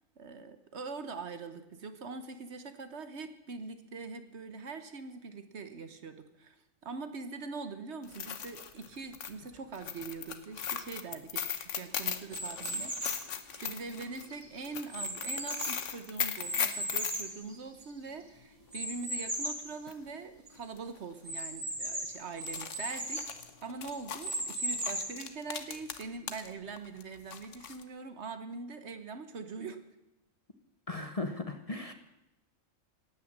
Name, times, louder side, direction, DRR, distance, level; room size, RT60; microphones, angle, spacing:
voice 1, 0.2-6.6 6.8-13.1 13.6-23.3 23.6-29.8, right 4 dB, 55° right, 10 dB, 1.3 m, -43 dB
sound 1, 8.0-17.2 19.4-19.5 19.9-20.0 20.8-21.0 21.3-21.4 22.3-26.5 26.8-27.8, left 8 dB, 65° left, 1.3 m, -38 dB
sound 2, 12.3-13.3 13.9-15.9 16.4-18.1 18.7-19.7 20.1-20.2 20.5-20.6 21.2-23.3 23.9-25.3, right 1 dB, 25° right, 2.8 m, -37 dB
voice 2, 30.9-31.9, left 2 dB, 30° left, 7 dB, 0.9 m, -37 dB
18.0 x 9.2 x 7.3 m, 0.92 s
omnidirectional pair, 1.4 m